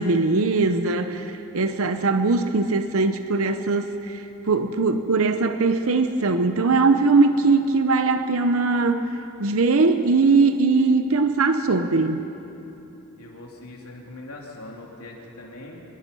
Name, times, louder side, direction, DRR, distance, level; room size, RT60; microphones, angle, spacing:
voice 1, 0.0-4.2 4.5-9.1 9.4-12.2, right 3 dB, 70° right, 8 dB, 0.8 m, -20 dB
voice 2, 13.2-15.8, left 2 dB, 90° left, -1 dB, 3.4 m, -41 dB
25.5 x 20.0 x 5.5 m, 3.0 s
head